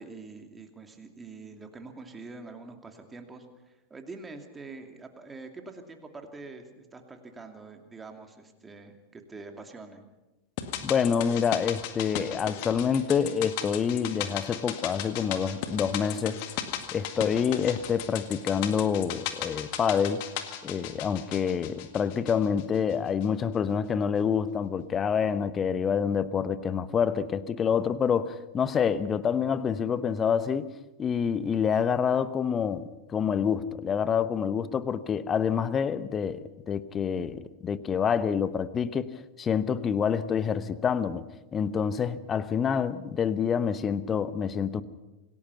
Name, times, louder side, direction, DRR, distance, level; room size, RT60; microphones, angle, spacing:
voice 1, 0.0-10.0 37.4-37.5, right 3 dB, 15° right, 5 dB, 2.7 m, -45 dB
sound 1, 10.6-22.9 23.2-23.3, left 11 dB, 45° left, 2.0 m, -37 dB
voice 2, 10.8-16.4 16.9-20.2 20.6-30.7 31.0-41.3 41.5-44.8, left 7 dB, 25° left, 15 dB, 1.0 m, -27 dB
27.0 x 17.5 x 5.7 m, 1.0 s
figure-of-eight pair, 90°, 0 cm